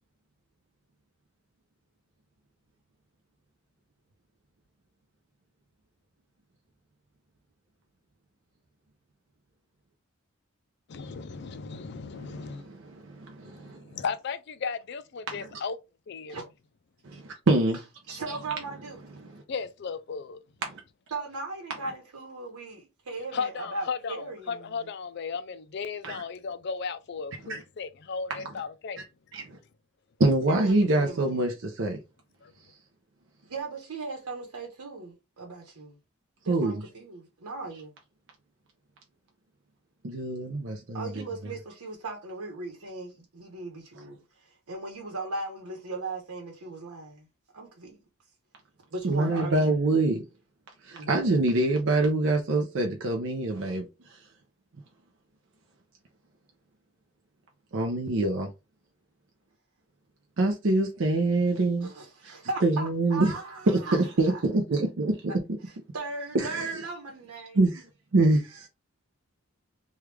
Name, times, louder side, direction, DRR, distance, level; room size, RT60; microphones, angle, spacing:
voice 1, 10.9-12.7 13.4-15.8 16.1-16.4 19.5-20.4 23.3-29.0 32.4-32.5, left 5 dB, 50° left, 0.4 m, -35 dB
voice 2, 12.2-13.8 15.3-15.4 17.0-17.8 18.1-18.2 19.2-19.4 20.7-20.8 26.0-26.2 27.5-27.6 29.3-29.6 30.2-32.0 36.5-36.8 40.0-41.2 49.0-50.2 50.8-53.8 57.7-58.5 60.4-61.9 62.2-62.3 62.6-63.3 63.7-65.2 66.3-66.7 67.6-67.8 68.1-68.4, right 2 dB, 55° right, 0.5 m, -25 dB
voice 3, 18.1-19.3 21.1-24.6 30.5-31.5 33.4-36.0 36.4-37.9 40.9-47.3 47.5-48.0 48.9-49.7 50.9-51.1 61.8-64.4 65.3-65.4 65.6-67.6, right 3 dB, 85° right, 1.0 m, -38 dB
3.1 x 2.3 x 3.3 m
head